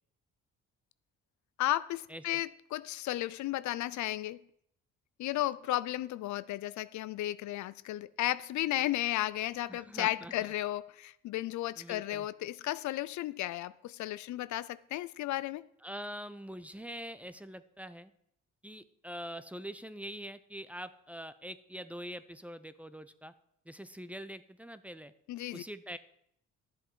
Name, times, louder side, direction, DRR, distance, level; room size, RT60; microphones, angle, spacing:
voice 1, 1.6-4.4 5.2-15.7 25.3-25.6, left 15 dB, 70° left, 0.4 m, -34 dB
voice 2, 2.1-2.4 9.7-10.3 11.8-12.3 15.8-18.1 18.6-23.3 23.7-25.1 25.5-26.0, equal, 5° right, 0.6 m, -44 dB
12.0 x 7.7 x 4.6 m
cardioid pair, 90°, 30 cm